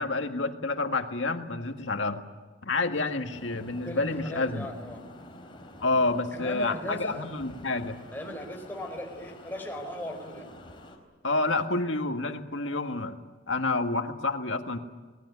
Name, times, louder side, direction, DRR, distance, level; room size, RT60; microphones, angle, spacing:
voice 1, 0.0-2.2 2.6-4.7 5.8-8.0 11.2-13.2 13.5-14.8, left 3 dB, 85° left, 5 dB, 1.9 m, -29 dB
sound 1, 3.3-11.0, left 1 dB, 25° left, 4.0 m, -48 dB
voice 2, 3.8-5.0 6.3-7.3 8.1-10.5, left 1 dB, 10° left, 2 dB, 4.6 m, -38 dB
26.5 x 19.5 x 9.8 m, 1.3 s
head